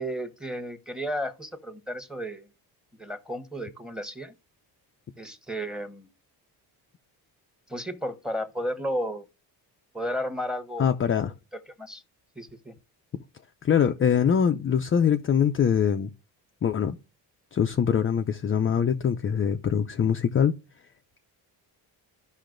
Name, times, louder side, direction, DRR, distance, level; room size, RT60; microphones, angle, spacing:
voice 1, 0.0-2.5 3.0-4.3 5.2-6.1 7.7-9.2 9.9-10.9 11.5-12.0 12.4-12.7, equal, ahead, 1.2 m, -33 dB
voice 2, 10.8-11.3 13.6-16.1 16.6-17.0 17.5-20.5, left 8 dB, 30° left, 0.5 m, -23 dB
13.5 x 5.6 x 2.6 m
cardioid pair, 95°, 42 cm